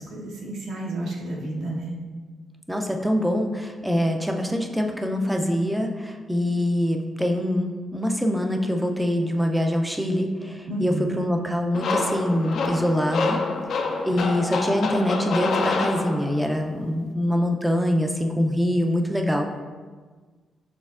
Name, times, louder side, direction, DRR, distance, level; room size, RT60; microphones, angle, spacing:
voice 1, 0.0-2.0 10.7-11.1 14.1-14.2, right 1 dB, 75° right, -3 dB, 1.0 m, -31 dB
voice 2, 2.7-13.4 14.0-19.5, equal, 5° right, 3 dB, 0.4 m, -24 dB
sound 1, 11.7-16.5, left 3 dB, 65° left, 0.4 m, -27 dB
6.3 x 3.2 x 2.4 m, 1.4 s
cardioid pair, 135°, 0 cm